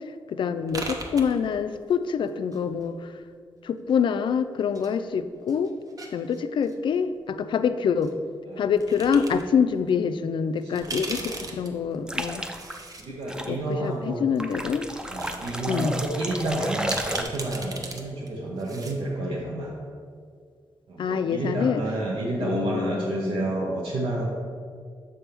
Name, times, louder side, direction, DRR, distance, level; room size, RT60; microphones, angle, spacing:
voice 1, 0.3-3.1 3.6-5.7 6.1-8.1 8.6-12.4 13.5-14.9 15.7-15.9 21.0-21.8 22.4-23.5, left 6 dB, 65° left, 11 dB, 0.4 m, -26 dB
sound 1, 0.7-3.1 3.9-4.9 5.2-6.7 8.0-8.1 8.8-9.4 9.9-10.0 10.6-13.0 13.4-13.5 14.4-14.5 14.9-15.5 15.8-15.9 16.8-18.0 18.3-18.4 18.6-19.0, right 3 dB, 45° right, 0.8 m, -37 dB
sound 2, 12.1-12.8 13.3-13.5 14.4-17.2, right 1 dB, 10° right, 0.4 m, -32 dB
voice 2, 13.0-14.2 15.1-19.7 20.9-24.2, right 2 dB, 80° right, -4 dB, 0.9 m, -30 dB
6.9 x 3.5 x 5.8 m, 2.1 s
wide cardioid pair, 110°, 9 cm